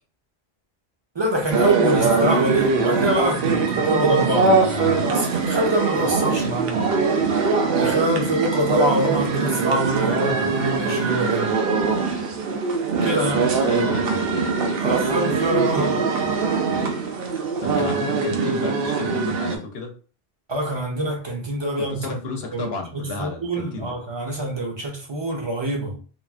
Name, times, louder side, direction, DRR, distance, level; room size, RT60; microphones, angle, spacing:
voice 1, 1.1-6.9 7.7-11.5 13.0-13.5 14.8-16.0 20.5-22.2 22.5-25.9, right 1 dB, 30° right, 0.6 m, -25 dB
sound 1, 1.5-19.6, right 4 dB, 70° right, 0.8 m, -22 dB
voice 2, 13.2-14.6 17.6-19.9 21.7-23.9, left 4 dB, 75° left, 0.9 m, -32 dB
3.0 x 2.4 x 2.3 m
omnidirectional pair, 1.1 m